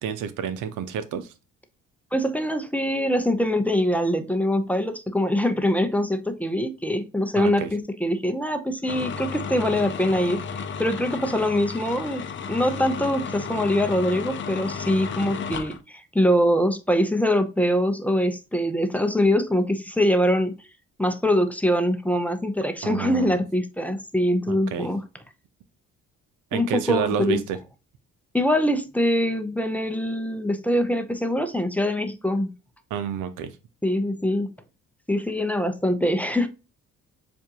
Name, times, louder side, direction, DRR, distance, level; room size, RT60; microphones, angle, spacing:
voice 1, 0.0-1.3 7.4-7.7 22.8-23.3 24.5-24.9 26.5-27.6 32.9-33.5, right 7 dB, 90° right, 0.7 m, -29 dB
voice 2, 2.1-10.4 10.8-20.5 21.0-25.0 26.5-27.4 28.3-32.5 33.8-34.5 35.1-36.5, equal, 5° left, 0.6 m, -23 dB
sound 1, 8.9-15.8, left 6 dB, 40° left, 0.6 m, -33 dB
7.2 x 2.6 x 2.8 m
cardioid pair, 90°, 30 cm